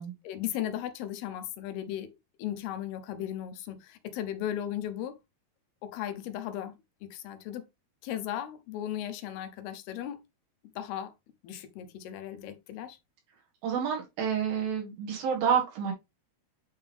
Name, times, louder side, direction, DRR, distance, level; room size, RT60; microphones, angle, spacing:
voice 1, 0.2-2.1 2.4-5.2 5.8-6.8 7.0-7.6 8.0-10.2 10.8-11.1 11.4-13.0, left 11 dB, 80° left, 2.8 m, -36 dB
voice 2, 13.6-15.9, right 7 dB, 65° right, 3.4 m, -29 dB
9.4 x 3.6 x 3.4 m
omnidirectional pair, 4.6 m